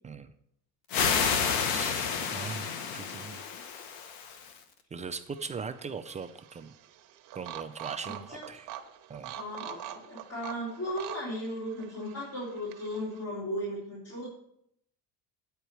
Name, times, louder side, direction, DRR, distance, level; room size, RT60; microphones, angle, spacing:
sound 1, 0.9-4.6, left 6 dB, 85° left, 1.1 m, -30 dB
voice 1, 2.3-3.4 4.9-6.7 7.3-8.7 9.1-9.4, right 5 dB, 20° right, 8 dB, 0.4 m, -39 dB
sound 2, 5.1-13.2, right 12 dB, 60° right, 0.9 m, -45 dB
voice 2, 8.1-8.4 9.4-14.3, equal, 45° left, -8 dB, 3.7 m, -36 dB
9.1 x 4.6 x 6.9 m, 0.74 s
cardioid pair, 135°, 35 cm